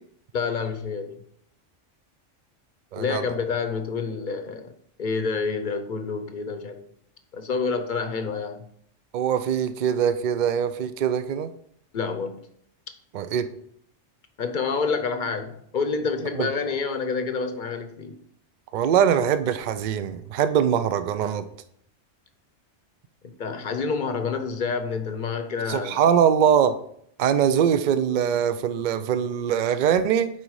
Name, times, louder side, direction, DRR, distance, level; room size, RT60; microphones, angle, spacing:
voice 1, 0.3-1.2 3.0-6.8 7.3-8.7 11.9-12.4 14.4-18.2 23.2-26.1, left 5 dB, 45° left, 0.8 m, -28 dB
voice 2, 2.9-3.2 9.1-11.5 13.1-13.5 16.4-16.5 18.7-21.4 25.7-26.8 27.2-30.3, right 8 dB, 55° right, 0.5 m, -22 dB
9.1 x 4.0 x 4.7 m
omnidirectional pair, 1.3 m